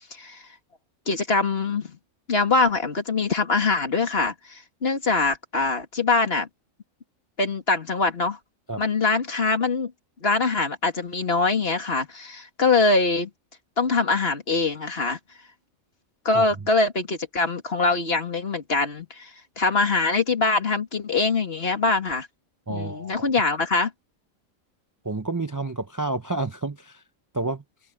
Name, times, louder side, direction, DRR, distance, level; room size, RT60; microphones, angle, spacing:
voice 1, 0.1-0.4 1.1-1.9 2.3-6.5 7.4-8.4 8.8-9.9 10.2-13.3 13.8-15.2 16.3-19.3 19.6-22.3 22.7-23.9, left 3 dB, 50° left, 2.4 m, -23 dB
voice 2, 22.7-23.3 25.0-27.0 27.3-27.6, right 2 dB, 20° right, 0.5 m, -29 dB
omnidirectional pair, 1.4 m